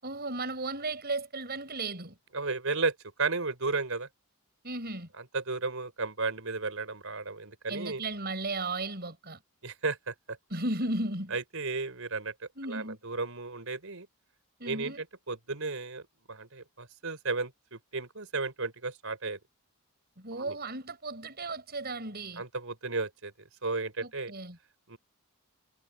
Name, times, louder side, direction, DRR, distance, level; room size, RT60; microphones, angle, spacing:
voice 1, 0.0-2.2 4.6-5.1 7.7-9.4 10.5-11.4 12.6-13.0 14.6-15.0 20.2-22.4 24.0-24.6, right 2 dB, 45° right, 7.1 m, -35 dB
voice 2, 2.3-4.1 5.2-8.0 9.6-10.4 11.3-12.3 12.7-14.1 14.6-16.0 16.3-19.4 20.3-20.6 22.4-23.3 23.6-24.3 24.9-25.0, right 3 dB, 65° right, 5.3 m, -34 dB
head